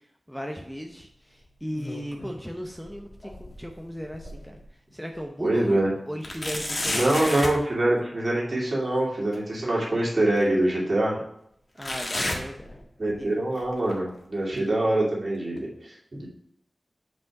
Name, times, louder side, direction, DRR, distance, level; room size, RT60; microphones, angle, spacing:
voice 1, 0.3-4.6 4.9-7.5 11.7-13.4, equal, ahead, 2 dB, 0.7 m, -37 dB
sound 1, 1.5-2.4 2.7-4.6 5.1-5.2 6.2-7.6 9.3-9.4 10.4-10.5 11.8-13.2 13.5-13.9 14.6-14.7 15.6-15.7, left 1 dB, 40° left, 1.4 m, -33 dB
voice 2, 5.4-5.9 6.9-11.2 13.0-16.3, right 1 dB, 50° right, -4 dB, 2.5 m, -24 dB
6.0 x 5.3 x 4.9 m, 0.73 s
wide cardioid pair, 100°, 0 cm